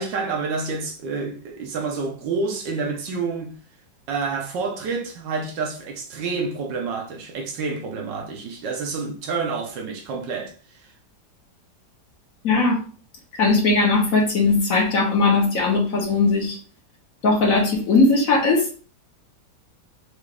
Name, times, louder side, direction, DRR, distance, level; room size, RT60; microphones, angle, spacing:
voice 1, 0.0-3.6 4.1-10.5, right 4 dB, 75° right, 1.4 m, -28 dB
voice 2, 12.4-12.8 13.4-16.6 17.2-18.7, left 3 dB, 55° left, 1.2 m, -19 dB
4.8 x 2.6 x 3.3 m
omnidirectional pair, 2.0 m